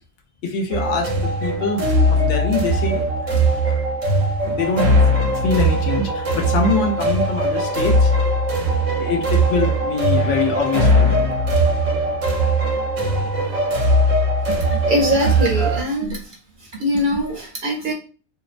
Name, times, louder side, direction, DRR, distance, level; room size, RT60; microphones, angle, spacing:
voice 1, 0.4-3.7 4.5-4.9 5.2-8.1 9.0-11.2, left 4 dB, 75° left, 4 dB, 0.9 m, -24 dB
sound 1, 0.7-15.8, right 1 dB, 80° right, 1.0 m, -19 dB
voice 2, 14.5-16.4 16.8-17.9, equal, 50° right, -1 dB, 0.8 m, -22 dB
2.5 x 2.1 x 2.4 m, 0.36 s
omnidirectional pair, 1.3 m